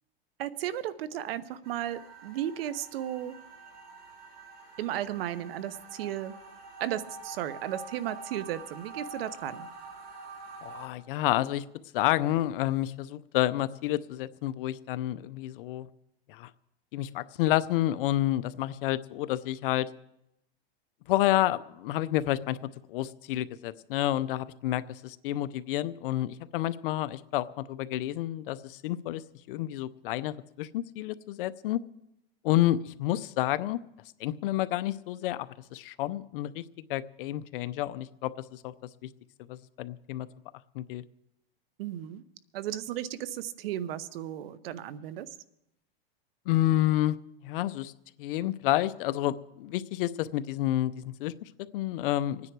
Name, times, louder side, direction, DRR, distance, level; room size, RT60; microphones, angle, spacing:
voice 1, 0.4-3.3 4.8-6.3 6.8-9.7 41.8-42.2 42.5-45.3, right 12 dB, 70° right, 17 dB, 0.9 m, -35 dB
sound 1, 1.6-10.9, right 3 dB, 90° right, 6.2 m, -46 dB
voice 2, 10.6-11.6 11.9-15.9 16.3-16.5 16.9-19.9 21.1-29.2 29.5-31.8 32.4-33.8 34.2-36.6 36.9-38.7 39.0-39.1 39.5-40.3 40.7-41.0 46.5-47.2 47.4-47.9 48.2-51.3 51.6-52.4, left 14 dB, 60° left, 15 dB, 0.6 m, -29 dB
26.0 x 9.7 x 4.6 m, 0.82 s
supercardioid pair, 145°, 30 cm